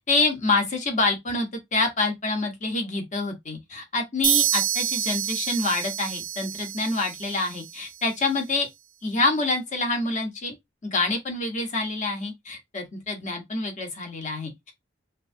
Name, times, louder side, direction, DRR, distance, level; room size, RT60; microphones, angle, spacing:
voice 1, 0.1-8.7 9.0-10.6 10.8-14.7, left 3 dB, 40° left, 0.8 m, -26 dB
sound 1, 4.2-8.0, right 11 dB, 75° right, 0.4 m, -28 dB
2.9 x 2.4 x 2.6 m
head